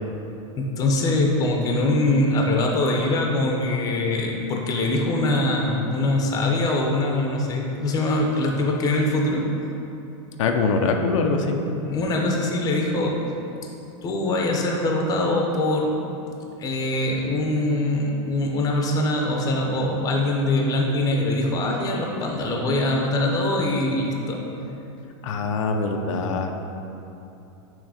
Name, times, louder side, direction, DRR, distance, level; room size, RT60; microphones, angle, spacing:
voice 1, 0.5-9.4 11.9-13.3 14.0-16.1 16.6-24.4, left 2 dB, 25° left, 0 dB, 0.6 m, -23 dB
voice 2, 10.4-11.6 25.2-26.5, left 4 dB, 90° left, 4 dB, 0.5 m, -23 dB
6.2 x 3.1 x 5.0 m, 2.9 s
supercardioid pair, 150°, 16 cm